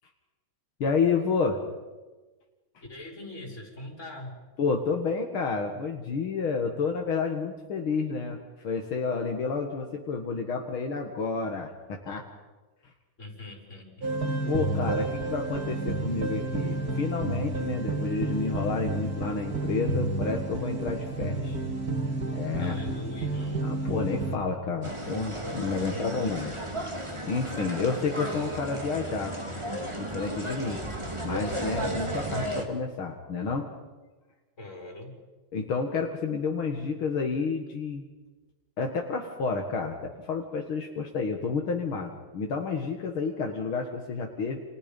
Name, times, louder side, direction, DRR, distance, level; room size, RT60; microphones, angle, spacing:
voice 1, 0.8-1.6 4.6-8.4 8.6-12.2 14.4-21.6 22.3-22.8 23.6-26.6 27.2-29.3 29.9-30.8 31.2-33.7 35.5-38.0 38.8-44.6, left 4 dB, 75° left, 2 dB, 2.7 m, -30 dB
voice 2, 2.9-4.3 13.2-14.1 22.6-23.7 25.9-26.3 34.6-35.1, left 2 dB, 35° left, 0 dB, 6.0 m, -42 dB
sound 1, 14.0-24.4, right 2 dB, 45° right, 2.3 m, -30 dB
sound 2, 24.8-32.6, right 1 dB, 15° right, 2.9 m, -34 dB
29.5 x 29.0 x 5.4 m, 1.2 s
omnidirectional pair, 2.3 m